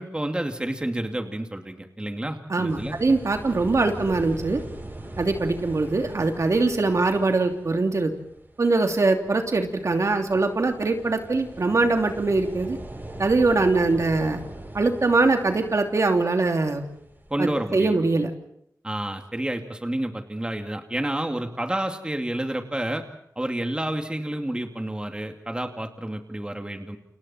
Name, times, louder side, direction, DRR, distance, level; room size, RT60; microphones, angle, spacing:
voice 1, 0.0-3.0 17.3-18.1 18.8-23.1 23.4-27.0, right 1 dB, 15° right, 5 dB, 2.4 m, -29 dB
voice 2, 2.5-4.6 5.2-8.1 8.6-12.8 13.2-14.4 14.7-16.8 17.4-18.3, right 3 dB, 55° right, 4 dB, 2.9 m, -22 dB
sound 1, 2.7-17.9, right 1 dB, 35° right, 7.4 m, -41 dB
29.5 x 28.5 x 4.4 m, 0.75 s
wide cardioid pair, 85°, 6 cm